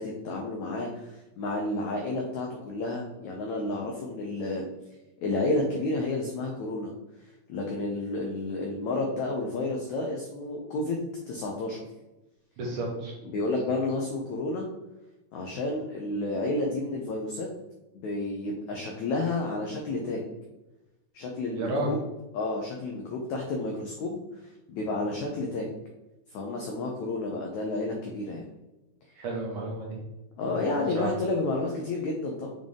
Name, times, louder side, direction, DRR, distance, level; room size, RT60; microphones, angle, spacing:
voice 1, 0.0-4.7 5.2-6.9 7.5-11.0 11.3-11.8 13.2-14.7 15.3-17.5 17.9-20.2 21.1-22.0 22.3-24.2 24.7-25.7 26.3-28.5 30.4-32.5, left 2 dB, 80° left, 0 dB, 1.6 m, -31 dB
voice 2, 12.6-13.1 21.5-21.9 29.2-30.0 30.4-30.6 31.0-31.1, right 2 dB, 65° right, -2 dB, 2.3 m, -32 dB
7.0 x 3.8 x 3.6 m, 1.0 s
omnidirectional pair, 4.3 m